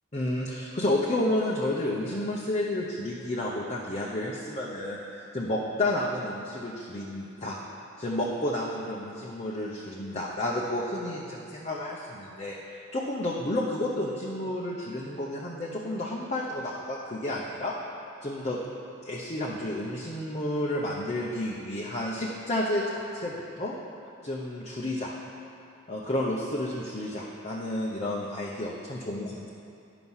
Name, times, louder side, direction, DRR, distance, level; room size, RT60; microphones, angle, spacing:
voice 1, 0.1-7.6 8.0-17.7 18.2-18.6 19.0-23.7 24.2-25.1 25.9-29.5, left 1 dB, 30° left, -4 dB, 0.7 m, -31 dB
9.8 x 5.9 x 5.6 m, 2.6 s
head